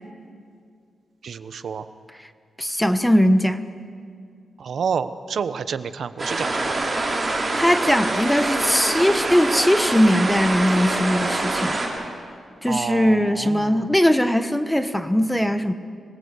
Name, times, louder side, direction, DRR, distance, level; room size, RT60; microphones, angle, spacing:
voice 1, 1.2-1.8 4.6-6.9 12.7-13.8, right 6 dB, 70° right, 11 dB, 1.1 m, -29 dB
voice 2, 2.6-3.6 7.6-11.8 12.6-15.7, equal, 5° left, 10 dB, 1.3 m, -20 dB
sound 1, 6.2-11.9, right 2 dB, 30° right, 7.1 m, -25 dB
26.5 x 19.5 x 8.3 m, 2.2 s
cardioid pair, 90°, 0 cm